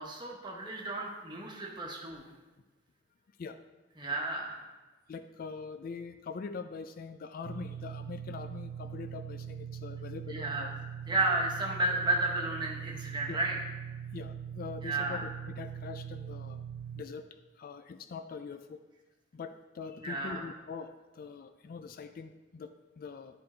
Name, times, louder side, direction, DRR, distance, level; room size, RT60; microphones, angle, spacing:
voice 1, 0.0-2.3 4.0-4.6 10.3-10.7 11.1-13.6 14.8-15.2 20.0-20.4, right 2 dB, 25° right, -1 dB, 1.2 m, -32 dB
voice 2, 5.1-10.7 13.3-13.4 14.1-16.6 16.9-17.3 17.6-18.8 19.3-23.4, left 5 dB, 45° left, 9 dB, 0.3 m, -43 dB
sound 1, 7.4-17.0, right 8 dB, 85° right, 0.4 m, -42 dB
11.0 x 3.8 x 4.3 m, 1.2 s
head